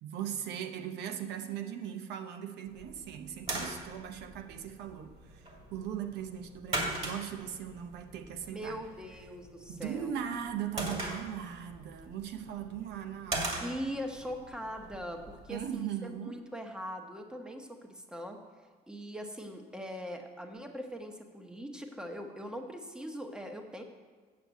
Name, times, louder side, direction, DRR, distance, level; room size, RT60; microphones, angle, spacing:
voice 1, 0.0-8.8 9.7-13.7 15.5-16.4, right 9 dB, 80° right, 7 dB, 0.8 m, -39 dB
sound 1, 2.7-15.7, right 2 dB, 40° right, 2.4 m, -41 dB
voice 2, 8.5-10.2 13.6-18.4 18.9-23.8, equal, 5° right, 4 dB, 1.1 m, -41 dB
7.9 x 6.5 x 8.1 m, 1.5 s
cardioid pair, 110°, 17 cm